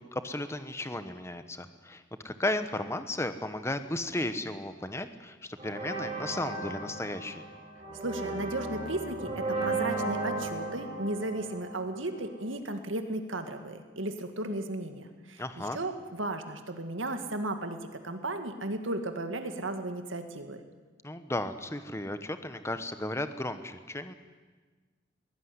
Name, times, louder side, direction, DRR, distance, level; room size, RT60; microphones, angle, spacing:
voice 1, 0.1-7.4 15.4-15.8 21.0-24.1, left 1 dB, 15° left, 10 dB, 1.1 m, -34 dB
sound 1, 5.6-12.3, right 2 dB, 25° right, 7.0 m, -35 dB
voice 2, 8.0-20.6, right 2 dB, 85° right, 7 dB, 2.2 m, -35 dB
22.0 x 17.0 x 9.7 m, 1.4 s
head